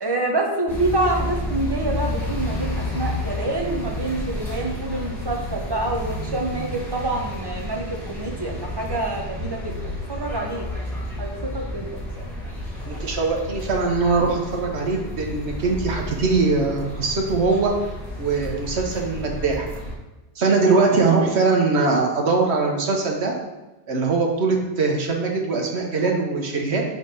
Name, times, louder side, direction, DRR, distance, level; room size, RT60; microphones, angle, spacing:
voice 1, 0.0-9.7 10.1-10.7 11.2-11.9, right 2 dB, 25° right, 1 dB, 0.9 m, -26 dB
sound 1, 0.7-19.9, left 1 dB, ahead, 1.6 m, -31 dB
voice 2, 12.8-17.7 18.2-19.7 20.4-23.3 23.9-26.8, right 4 dB, 70° right, 1 dB, 1.3 m, -21 dB
4.9 x 4.3 x 5.4 m, 1.1 s
omnidirectional pair, 1.2 m